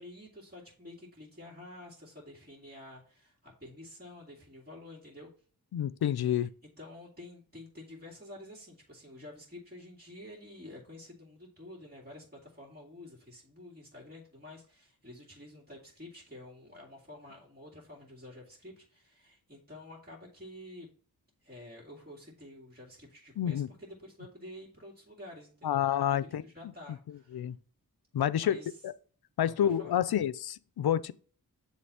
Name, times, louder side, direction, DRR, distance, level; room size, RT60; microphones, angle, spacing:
voice 1, 0.0-5.3 6.2-20.9 21.4-27.5 28.4-28.8 29.4-29.9, left 1 dB, 25° right, 2.4 m, -50 dB
voice 2, 5.7-6.5 23.4-23.7 25.6-26.4 27.3-27.6 28.1-28.6 28.8-28.9 29.4-31.1, left 10 dB, 75° left, 0.5 m, -28 dB
7.7 x 3.2 x 5.6 m
cardioid pair, 40°, 38 cm